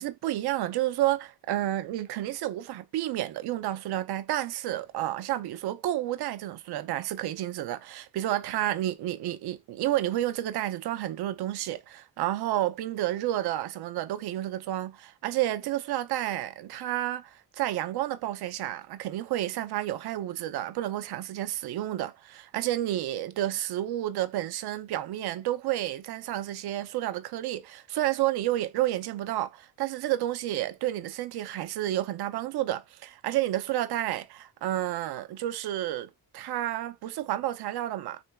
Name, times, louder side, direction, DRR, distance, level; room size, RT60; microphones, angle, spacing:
voice 1, 0.0-38.2, right 14 dB, 90° right, 0.6 m, -30 dB
4.1 x 3.4 x 2.3 m
cardioid pair, 105°, 38 cm